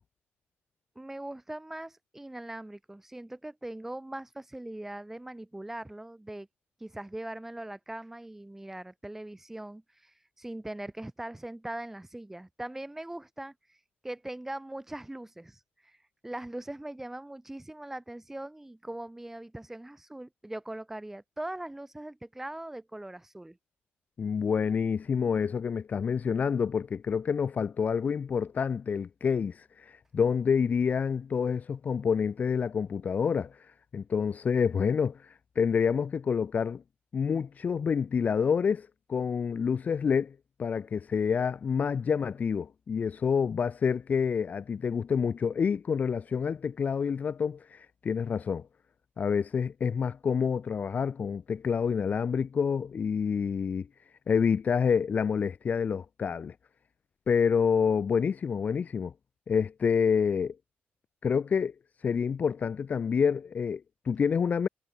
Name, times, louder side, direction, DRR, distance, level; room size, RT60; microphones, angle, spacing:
voice 1, 1.0-6.5 6.8-13.8 14.0-16.0 16.2-23.6, right 1 dB, 10° right, 5.5 m, -41 dB
voice 2, 24.2-36.8 37.1-48.7 49.2-53.9 54.3-56.5 57.3-59.1 59.5-60.6 61.2-61.7 62.0-64.7, left 6 dB, 40° left, 1.0 m, -28 dB
cardioid pair, 135°, 4 cm